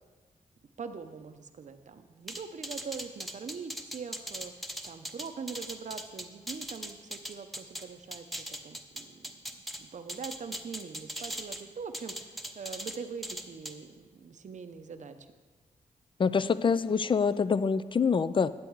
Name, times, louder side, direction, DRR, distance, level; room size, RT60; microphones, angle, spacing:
voice 1, 0.8-4.6 4.8-15.3, right 5 dB, 55° right, 9 dB, 0.7 m, -43 dB
sound 1, 2.3-7.8 8.1-9.8 10.1-11.6 11.9-13.0 13.2-13.7, equal, ahead, 0.9 m, -39 dB
voice 2, 16.2-18.5, left 5 dB, 35° left, 15 dB, 0.4 m, -25 dB
10.5 x 7.7 x 4.7 m, 1.4 s
cardioid pair, 75°, 15 cm